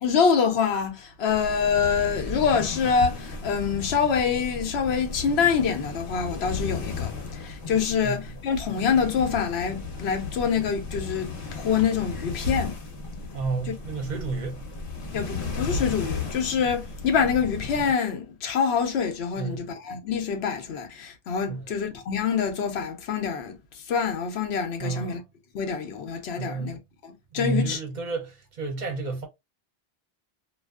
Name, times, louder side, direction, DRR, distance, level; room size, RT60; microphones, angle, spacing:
voice 1, 0.0-7.1 7.4-12.8 13.7-13.8 15.1-23.6 23.9-25.2 25.5-26.8 27.0-27.8, left 6 dB, 90° left, 0.9 m, -25 dB
sound 1, 1.3-17.9, left 4 dB, 60° left, 0.9 m, -35 dB
voice 2, 13.3-14.6 19.4-19.7 21.5-21.7 24.8-25.2 26.4-26.8 27.3-29.3, right 4 dB, 50° right, 0.7 m, -31 dB
2.5 x 2.3 x 2.3 m
omnidirectional pair, 1.1 m